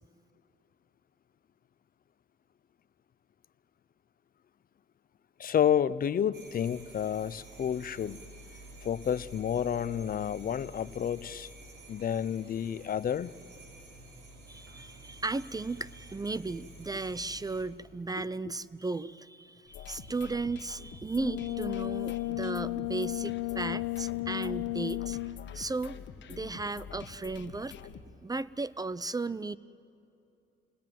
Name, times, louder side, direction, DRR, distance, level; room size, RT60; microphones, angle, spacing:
voice 1, 5.4-8.2 8.8-11.5 11.9-13.3 18.2-18.3, left 9 dB, 45° left, 0.7 m, -30 dB
sound 1, 6.3-17.6, right 1 dB, 65° right, 5.3 m, -50 dB
voice 2, 14.5-25.2 25.5-25.9 26.3-27.8 28.2-29.6, right 3 dB, 20° right, 0.5 m, -35 dB
sound 2, 19.7-28.0, left 7 dB, 65° left, 1.4 m, -46 dB
Brass instrument, 21.1-25.5, left 19 dB, 85° left, 0.8 m, -34 dB
29.5 x 20.0 x 9.3 m
cardioid pair, 90°, 20 cm